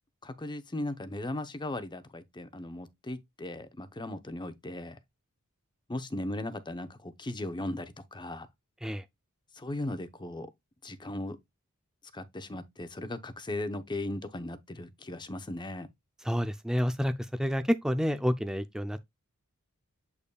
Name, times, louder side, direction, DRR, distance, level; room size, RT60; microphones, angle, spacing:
voice 1, 0.2-5.0 5.9-8.5 9.5-10.5 10.8-11.4 12.1-15.9, left 1 dB, 20° left, 0.8 m, -37 dB
voice 2, 16.2-17.1 17.4-19.0, equal, 5° right, 0.4 m, -29 dB
8.2 x 5.3 x 2.3 m
head